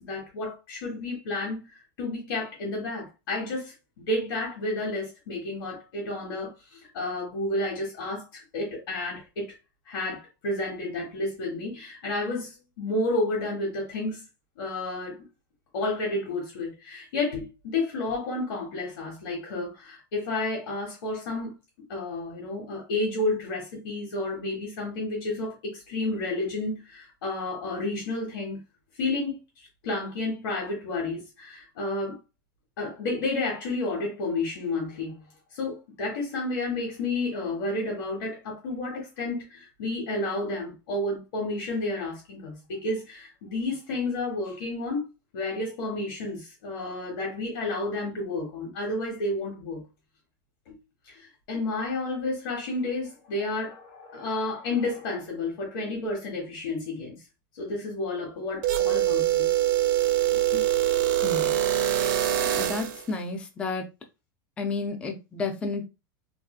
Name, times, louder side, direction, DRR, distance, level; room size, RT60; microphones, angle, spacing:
voice 1, 0.0-9.5 9.9-14.2 14.6-15.2 15.7-21.5 21.9-28.6 29.0-32.2 32.8-35.2 35.5-45.0 45.3-49.8 50.7-50.8 51.1-57.2 57.6-59.5 60.3-60.6, left 2 dB, 80° left, 1.2 m, -31 dB
sound 1, 58.6-63.0, right 12 dB, 60° right, 0.5 m, -24 dB
voice 2, 61.2-61.5 62.5-63.8 64.6-65.8, left 3 dB, 10° left, 0.3 m, -31 dB
3.1 x 2.7 x 2.3 m
supercardioid pair, 165°, 12 cm